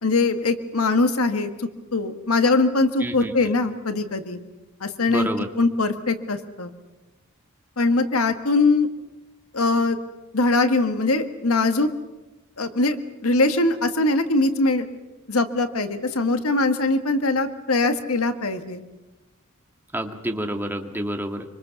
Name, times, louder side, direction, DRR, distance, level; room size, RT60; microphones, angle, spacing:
voice 1, 0.0-4.4 4.8-5.3 5.6-6.7 7.8-8.9 9.5-10.0 10.3-11.9 12.6-14.8 15.3-18.8, left 3 dB, 75° left, 8 dB, 1.6 m, -22 dB
voice 2, 3.0-3.5 5.1-5.5 19.9-21.5, right 1 dB, 10° right, 4 dB, 1.9 m, -28 dB
25.0 x 25.0 x 7.0 m, 1.1 s
head